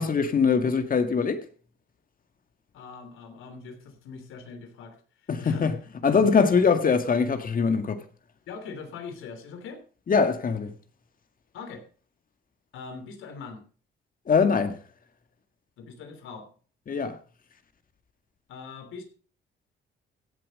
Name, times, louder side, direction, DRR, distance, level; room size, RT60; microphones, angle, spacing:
voice 1, 0.0-1.4 5.3-5.7 6.0-8.0 10.1-10.7 14.3-14.8 16.9-17.1, left 5 dB, 45° left, 1.9 m, -22 dB
voice 2, 2.7-5.0 5.2-5.7 6.1-6.2 6.5-6.6 8.5-9.8 11.5-11.8 12.7-13.6 15.8-16.5 18.5-19.0, left 5 dB, 85° left, 3.3 m, -41 dB
16.0 x 7.7 x 5.3 m
cardioid pair, 90°, 20 cm